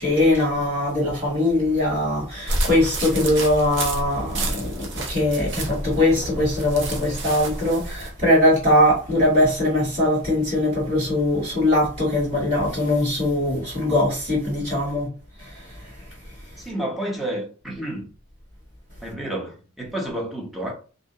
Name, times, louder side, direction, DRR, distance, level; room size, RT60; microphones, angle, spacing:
voice 1, 0.0-15.1 15.4-15.9, left 1 dB, 35° right, 1.4 m, -21 dB
sound 1, 2.5-8.1, right 1 dB, 60° right, 0.6 m, -29 dB
voice 2, 16.6-18.1 19.0-20.7, right 1 dB, ahead, 0.6 m, -30 dB
2.4 x 2.1 x 2.7 m
head